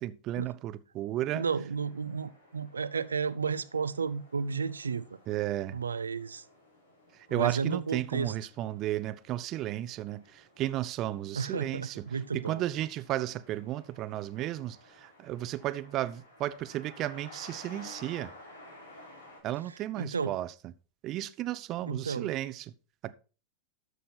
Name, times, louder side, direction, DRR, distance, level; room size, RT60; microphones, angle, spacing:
voice 1, 0.0-1.4 5.3-5.8 7.3-12.1 12.3-18.3 19.4-20.5 21.0-22.7 23.0-23.1, right 14 dB, 40° right, 0.8 m, -34 dB
voice 2, 1.3-5.2 5.7-6.4 7.3-8.3 11.4-12.6 20.0-20.4 21.9-22.3, right 5 dB, 80° right, 0.6 m, -32 dB
sound 1, 1.7-19.4, left 1 dB, 80° left, 3.6 m, -55 dB
13.0 x 6.5 x 4.3 m
figure-of-eight pair, 95°, 0 cm